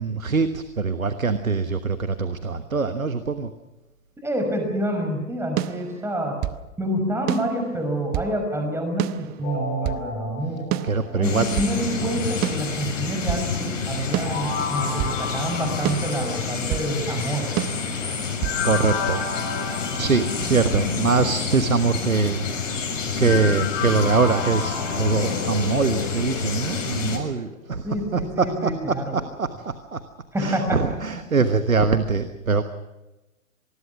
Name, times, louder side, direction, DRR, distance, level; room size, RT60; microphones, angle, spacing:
voice 1, 0.0-3.5 10.8-11.5 12.0-12.1 18.6-19.2 19.9-22.8 23.2-27.9 28.1-30.0 30.4-32.6, right 4 dB, 90° right, 10 dB, 1.3 m, -23 dB
voice 2, 4.2-6.4 6.8-10.8 11.2-17.5 27.8-29.2 30.3-30.8, right 1 dB, 5° right, 5 dB, 5.8 m, -27 dB
sound 1, 5.6-6.6 7.3-8.4 9.0-10.1 10.7-11.8 12.4-13.5 14.1-15.2 15.8-16.9 17.6-18.6, right 15 dB, 25° right, 0.8 m, -29 dB
sound 2, 9.4-11.7 14.0-17.0 18.4-21.2 23.2-27.7 28.1-28.2, left 5 dB, 30° left, 4.2 m, -32 dB
sound 3, 11.2-27.2, left 5 dB, 70° left, 6.8 m, -29 dB
26.0 x 20.0 x 6.2 m, 1.1 s
figure-of-eight pair, 110°, 40 cm